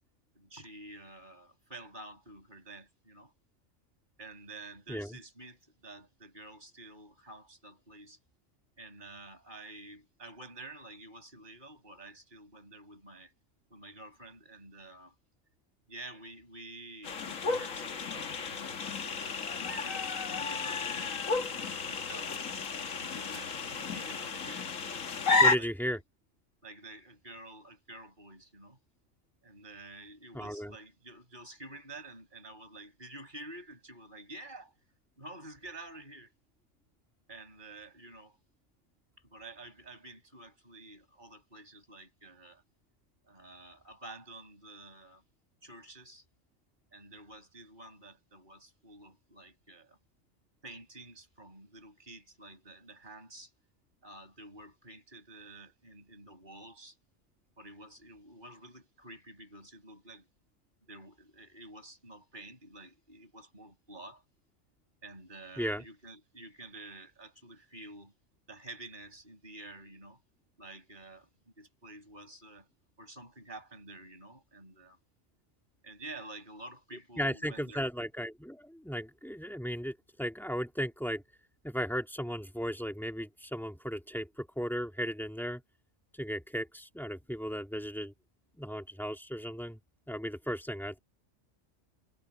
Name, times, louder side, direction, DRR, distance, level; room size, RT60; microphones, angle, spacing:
voice 1, 0.3-3.3 4.2-8.2 8.8-13.3 13.7-15.1 15.9-18.8 19.5-22.4 22.9-24.8 25.3-26.0 26.6-28.8 29.4-34.7 35.2-36.3 37.3-38.4 39.2-42.6 43.2-45.2 45.6-46.2 46.9-50.0 50.6-53.5 54.0-57.0 57.6-60.3 60.9-64.2 65.0-68.1 68.5-70.2 70.6-71.3 71.6-72.7 73.0-75.0 75.8-77.9, right 2 dB, 40° right, 6.7 m, -50 dB
sound 1, 17.0-25.6, left 3 dB, 85° left, 1.8 m, -32 dB
voice 2, 25.4-26.0 30.3-30.7 65.6-65.8 77.2-81.2 81.6-85.6 86.1-88.1 88.6-89.8 90.1-91.0, equal, ahead, 2.2 m, -36 dB
omnidirectional pair, 1.3 m